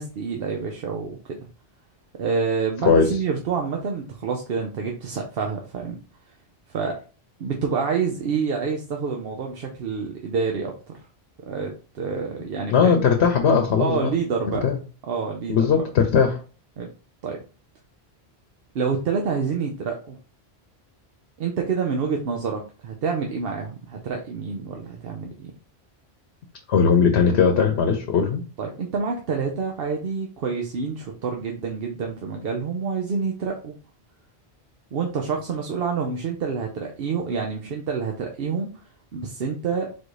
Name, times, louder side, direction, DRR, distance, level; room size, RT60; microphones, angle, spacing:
voice 1, 0.0-1.4 2.2-6.0 6.7-6.9 7.4-11.0 11.4-13.1 13.8-14.6 15.1-15.6 16.8-16.9 17.2-17.4 18.7-20.2 21.4-25.5 28.6-33.7 34.9-38.7 39.1-39.9, right 5 dB, 65° right, 2 dB, 0.9 m, -27 dB
voice 2, 2.8-3.2 12.7-14.1 14.6-14.8 15.5-16.4 26.7-28.4, left 6 dB, 80° left, 5 dB, 1.0 m, -19 dB
4.1 x 2.6 x 4.7 m, 0.37 s
omnidirectional pair, 1.1 m